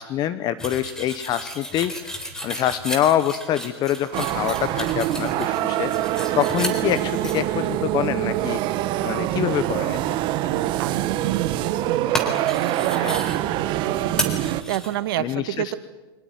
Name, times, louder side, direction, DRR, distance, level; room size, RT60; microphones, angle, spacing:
voice 1, 0.0-8.6 9.0-10.1 13.0-13.2 15.2-15.7, left 11 dB, 30° left, 14 dB, 1.0 m, -26 dB
sound 1, 0.6-7.4 12.1-13.4 14.2-14.9, equal, 5° left, 3.9 m, -33 dB
sound 2, 4.1-14.6, right 13 dB, 35° right, 1.3 m, -25 dB
voice 2, 10.5-14.4 14.7-15.8, right 14 dB, 60° right, 13 dB, 1.7 m, -30 dB
24.5 x 20.0 x 9.4 m, 1.1 s
hypercardioid pair, 140°, 13 cm